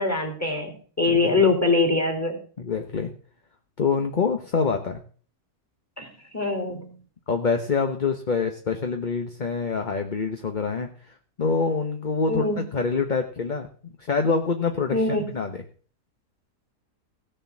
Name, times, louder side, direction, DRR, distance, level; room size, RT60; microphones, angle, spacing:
voice 1, 0.0-2.4 6.0-6.1 6.3-7.0 12.3-12.6 14.9-15.3, left 3 dB, 10° left, 4 dB, 3.3 m, -23 dB
voice 2, 2.6-3.1 3.8-5.0 7.3-13.7 14.0-15.6, left 5 dB, 35° left, 6 dB, 0.9 m, -26 dB
16.5 x 6.8 x 7.2 m, 0.43 s
omnidirectional pair, 1.8 m